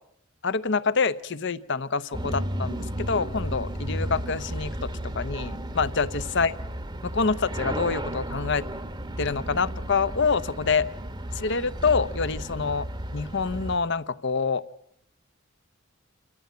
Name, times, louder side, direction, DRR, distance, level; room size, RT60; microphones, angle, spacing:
voice 1, 0.4-4.9 5.1-6.5 7.0-8.6 9.2-10.8 11.3-12.9 13.1-14.6, left 5 dB, 55° left, 15 dB, 0.8 m, -26 dB
sound 1, 2.1-13.8, equal, 20° right, 1.0 m, -33 dB
28.5 x 14.5 x 9.5 m, 0.78 s
head